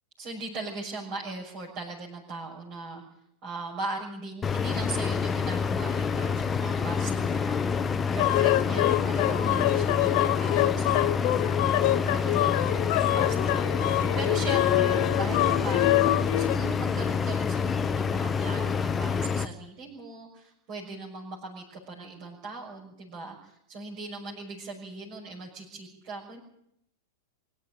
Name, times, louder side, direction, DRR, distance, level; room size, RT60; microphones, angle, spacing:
voice 1, 0.2-3.0 3.4-7.6 8.1-12.8 13.1-26.4, right 3 dB, 40° right, -3 dB, 6.2 m, -39 dB
sound 1, 4.4-19.5, left 6 dB, 15° left, 1.0 m, -27 dB
sound 2, 8.2-16.6, left 16 dB, 45° left, 0.9 m, -25 dB
24.5 x 13.0 x 8.9 m, 0.77 s
figure-of-eight pair, 90°, 0 cm